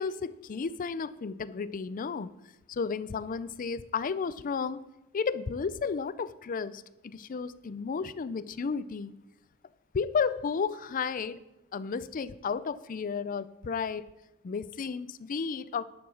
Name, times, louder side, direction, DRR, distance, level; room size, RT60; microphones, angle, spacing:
voice 1, 0.0-2.3 2.7-4.8 5.1-9.2 9.9-11.4 11.7-14.0 14.4-15.8, left 5 dB, 40° left, 16 dB, 0.4 m, -33 dB
11.0 x 4.9 x 7.1 m, 0.93 s
head